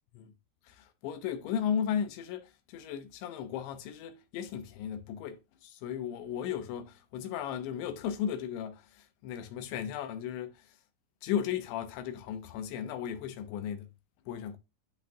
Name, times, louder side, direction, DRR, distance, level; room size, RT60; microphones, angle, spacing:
voice 1, 0.7-10.7 11.2-13.9 14.3-14.6, left 9 dB, 80° left, 3.0 m, -35 dB
11.5 x 4.2 x 2.7 m
omnidirectional pair, 5.3 m